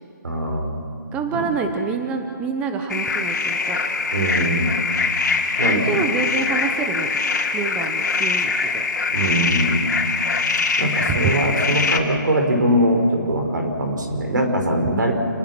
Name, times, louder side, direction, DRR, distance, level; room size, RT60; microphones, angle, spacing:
voice 1, 0.2-0.8 1.3-1.5 4.1-4.7 5.6-6.0 9.1-9.8 10.8-15.1, right 1 dB, 65° right, 3 dB, 5.6 m, -21 dB
voice 2, 1.1-3.8 5.6-7.3 7.5-8.9 11.1-11.2, right 5 dB, 10° right, 4 dB, 0.9 m, -27 dB
sound 1, 2.9-12.0, left 4 dB, 60° left, 3.4 m, -23 dB
29.5 x 20.0 x 6.1 m, 2.6 s
figure-of-eight pair, 160°, 11 cm